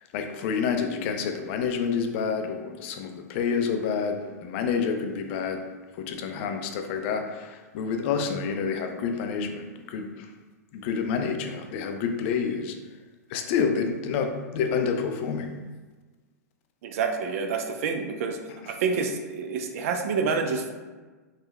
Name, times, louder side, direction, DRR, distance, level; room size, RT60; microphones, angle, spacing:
voice 1, 0.1-5.6 6.0-10.3 10.7-12.7 13.3-15.5, left 6 dB, 45° left, 5 dB, 0.3 m, -28 dB
voice 2, 16.8-18.4 18.7-20.7, right 5 dB, 55° right, 4 dB, 0.4 m, -28 dB
3.2 x 2.2 x 2.2 m, 1.3 s
hypercardioid pair, 110°, 9 cm